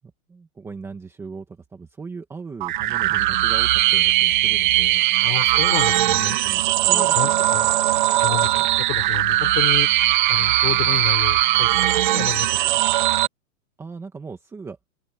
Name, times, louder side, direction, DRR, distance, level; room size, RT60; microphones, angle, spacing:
voice 1, 0.3-5.1 6.0-7.6 13.8-14.8, right 4 dB, 5° right, 1.6 m, -38 dB
sound 1, 2.6-13.3, right 16 dB, 35° right, 1.2 m, -19 dB
voice 2, 5.2-7.7 8.2-9.9 10.3-11.7 12.1-12.6 13.0-13.1, left 25 dB, 30° left, 4.8 m, -30 dB
open air
hypercardioid pair, 170°, 45 cm